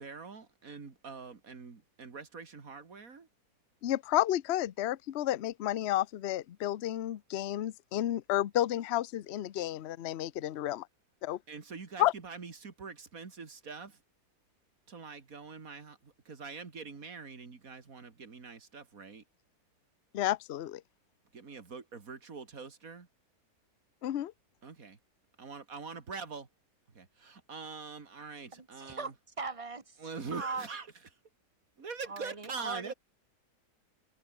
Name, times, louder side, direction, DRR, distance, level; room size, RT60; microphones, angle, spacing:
voice 1, 0.0-3.3 11.5-14.0 14.9-19.2 21.3-23.1 24.6-25.0 25.4-26.5 26.9-29.1 30.0-30.9 31.8-32.9, right 5 dB, 55° right, 2.8 m, -44 dB
voice 2, 3.8-10.9 11.2-11.4 12.0-12.1 20.1-20.8 24.0-24.3, left 13 dB, 55° left, 0.7 m, -31 dB
voice 3, 28.5-30.0 30.3-30.7 32.1-32.9, right 4 dB, 20° right, 1.9 m, -39 dB
omnidirectional pair, 1.7 m